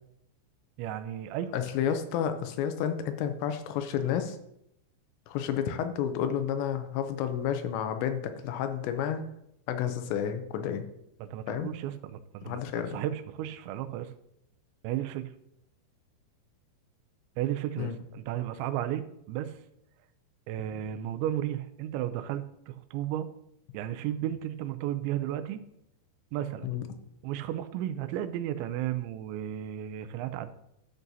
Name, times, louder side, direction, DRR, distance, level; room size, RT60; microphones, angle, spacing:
voice 1, 0.8-1.5 11.2-14.1 14.8-15.3 17.4-19.6 20.5-23.3 23.7-25.6 26.3-26.7 27.2-30.5, right 12 dB, 85° right, 10 dB, 2.9 m, -34 dB
voice 2, 1.5-4.4 5.3-9.2 9.7-10.9 11.5-11.7 12.5-13.0 17.8-18.0 26.6-26.8, left 9 dB, 80° left, 8 dB, 2.9 m, -31 dB
13.5 x 6.1 x 2.7 m, 0.78 s
omnidirectional pair, 5.1 m